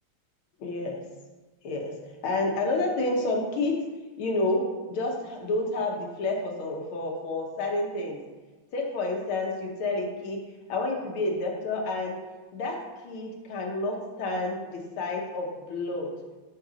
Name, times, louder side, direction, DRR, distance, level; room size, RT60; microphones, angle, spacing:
voice 1, 0.6-1.0 1.6-1.9 2.2-3.7 4.2-4.6 4.9-8.2 8.7-10.4 10.7-12.2 12.5-12.8 13.0-16.1, left 2 dB, 80° left, 1 dB, 2.1 m, -29 dB
7.9 x 3.8 x 6.2 m, 1.2 s
omnidirectional pair, 2.3 m